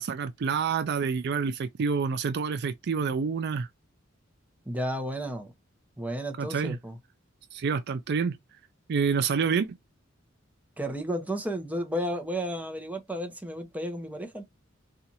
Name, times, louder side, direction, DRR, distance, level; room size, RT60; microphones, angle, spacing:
voice 1, 0.0-3.7 6.4-6.8 7.5-8.4 8.9-9.8, right 5 dB, 55° right, 0.4 m, -28 dB
voice 2, 4.7-5.5 6.0-7.0 10.8-14.4, equal, 10° right, 0.8 m, -32 dB
4.2 x 2.5 x 2.6 m
head